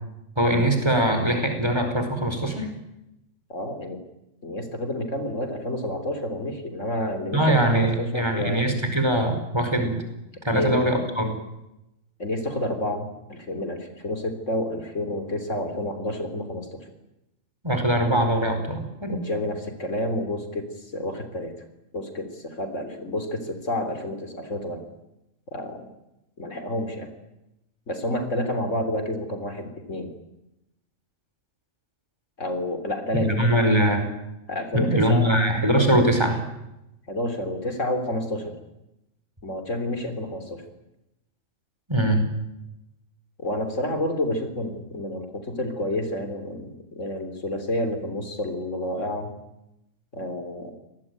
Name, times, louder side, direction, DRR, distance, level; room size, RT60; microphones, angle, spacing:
voice 1, 0.4-2.7 7.3-10.0 10.4-11.4 17.6-19.2 33.1-34.0 34.7-36.4 41.9-42.2, right 1 dB, 20° right, 5 dB, 5.0 m, -22 dB
voice 2, 3.5-4.0 4.4-8.7 10.5-10.8 12.2-16.9 19.1-21.5 21.9-24.8 25.5-25.9 26.4-27.1 27.9-30.1 32.4-33.5 34.5-35.3 37.1-38.6 39.4-40.6 43.4-49.3 50.1-50.7, left 1 dB, 70° left, 8 dB, 3.9 m, -29 dB
26.5 x 19.5 x 9.4 m, 0.89 s
omnidirectional pair, 1.3 m